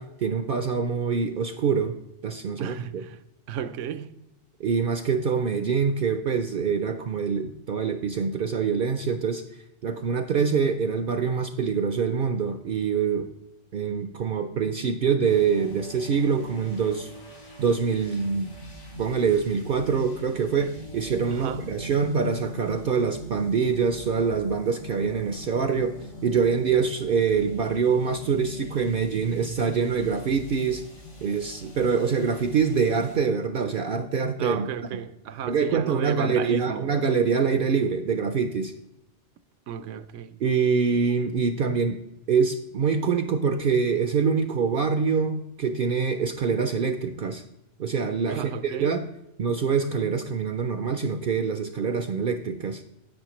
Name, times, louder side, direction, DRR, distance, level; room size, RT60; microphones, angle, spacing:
voice 1, 0.0-2.0 2.2-3.0 4.6-9.4 9.8-13.3 13.7-17.1 17.6-18.5 19.0-26.0 26.2-30.8 31.2-34.7 35.5-38.7 40.4-42.0 42.3-47.4 47.8-49.1 49.4-52.8, right 6 dB, 60° right, 0.6 m, -25 dB
voice 2, 2.6-3.2 3.5-4.2 21.3-21.7 34.4-36.9 39.7-40.4 48.3-49.0, right 8 dB, 80° right, 0.9 m, -34 dB
sound 1, 15.2-33.2, right 1 dB, 70° left, 3.5 m, -42 dB
10.5 x 7.6 x 3.0 m
omnidirectional pair, 1.3 m